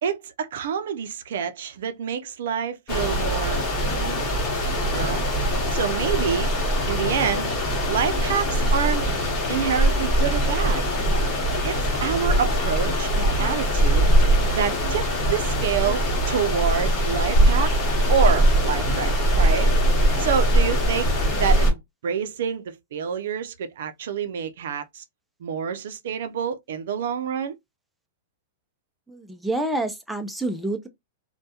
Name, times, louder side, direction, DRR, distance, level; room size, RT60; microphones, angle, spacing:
voice 1, 0.0-4.4 4.9-5.2 5.7-6.5 6.9-7.5 7.9-9.0 9.5-10.8 11.6-14.1 14.5-17.7 18.1-19.1 19.4-19.7 20.2-25.0 25.4-27.5, right 7 dB, 70° right, 0.4 m, -27 dB
sound 1, 2.9-21.7, equal, 25° left, 1.0 m, -22 dB
voice 2, 29.1-30.9, right 2 dB, ahead, 0.4 m, -28 dB
2.2 x 2.1 x 2.7 m
supercardioid pair, 155°, 0 cm